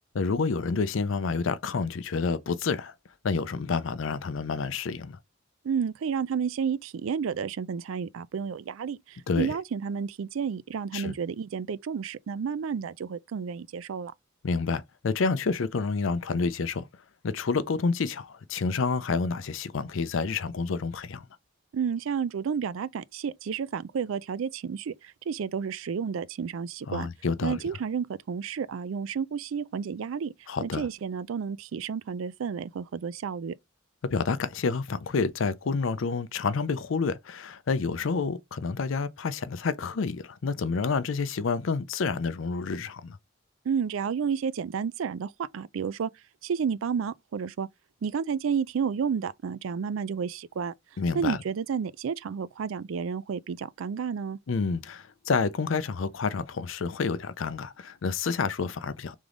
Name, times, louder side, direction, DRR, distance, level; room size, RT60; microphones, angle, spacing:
voice 1, 0.1-2.9 3.2-5.2 9.3-9.5 10.9-11.1 14.4-16.9 17.2-21.3 26.9-27.6 30.5-30.9 34.0-43.2 51.0-51.4 54.5-59.1, left 4 dB, 70° left, 0.5 m, -29 dB
voice 2, 5.6-14.1 21.7-27.1 27.4-30.3 30.6-33.5 43.6-46.1 46.4-47.7 48.0-50.7 51.1-54.4, right 6 dB, 75° right, 0.4 m, -31 dB
3.6 x 3.4 x 3.8 m
head